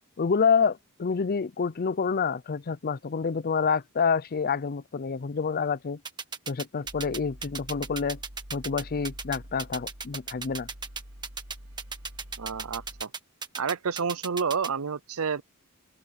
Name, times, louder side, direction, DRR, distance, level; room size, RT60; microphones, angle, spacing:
voice 1, 0.2-6.0 6.5-8.2 8.5-10.7, left 5 dB, 40° left, 0.5 m, -27 dB
sound 1, 6.1-14.7, right 5 dB, 20° right, 1.6 m, -35 dB
sound 2, 6.8-13.0, equal, 90° right, 4.5 m, -47 dB
voice 2, 12.4-13.1 13.6-15.4, right 6 dB, 70° right, 0.7 m, -29 dB
open air
head